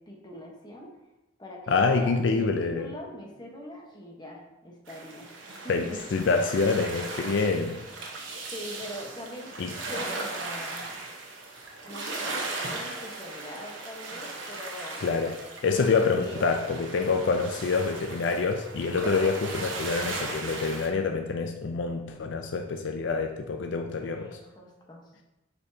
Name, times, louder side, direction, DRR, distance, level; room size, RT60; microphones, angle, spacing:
voice 1, 0.1-0.9 1.4-5.3 5.6-6.1 8.5-9.5 9.9-10.9 11.8-12.4 12.7-15.0 15.7-16.5 17.1-17.5 24.0-25.2, left 1 dB, 25° left, -1 dB, 1.1 m, -43 dB
voice 2, 1.7-2.9 5.7-7.8 9.6-9.7 15.0-15.3 15.6-24.4, left 4 dB, 70° left, 4 dB, 0.4 m, -26 dB
sound 1, 4.9-20.9, right 2 dB, 85° right, 1.0 m, -37 dB
7.7 x 4.4 x 2.8 m, 0.96 s
head